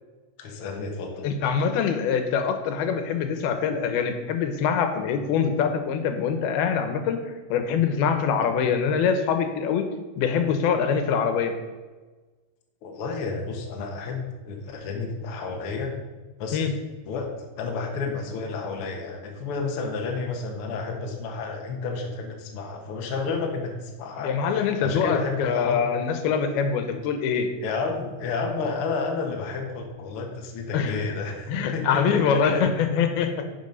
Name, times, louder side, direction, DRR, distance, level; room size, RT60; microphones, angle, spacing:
voice 1, 0.4-1.3 12.8-15.9 16.4-16.7 17.0-17.3 17.6-25.8 27.6-32.8, left 4 dB, 55° left, 2 dB, 1.6 m, -31 dB
voice 2, 1.2-7.2 7.5-9.9 10.2-11.5 16.5-16.7 24.2-27.5 30.7-31.1 31.5-33.3, left 6 dB, 90° left, 7 dB, 2.9 m, -24 dB
10.5 x 6.1 x 5.4 m, 1.3 s
omnidirectional pair, 4.3 m